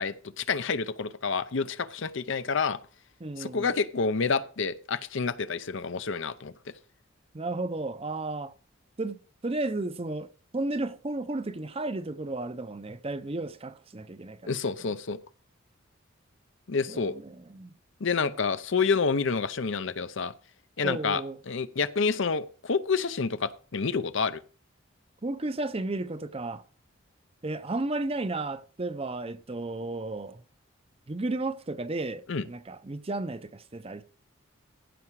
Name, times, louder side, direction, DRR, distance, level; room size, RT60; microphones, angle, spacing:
voice 1, 0.0-2.8 3.4-6.5 14.4-15.2 16.7-17.1 18.0-20.3 20.8-24.4 32.3-32.4, left 5 dB, 65° left, 0.7 m, -28 dB
voice 2, 3.2-3.7 7.3-8.5 9.0-10.3 10.5-14.5 14.8-14.9 16.9-17.7 20.8-21.4 25.2-26.6 27.4-30.4 31.1-34.0, right 2 dB, 30° right, 0.6 m, -33 dB
15.5 x 6.0 x 4.7 m
head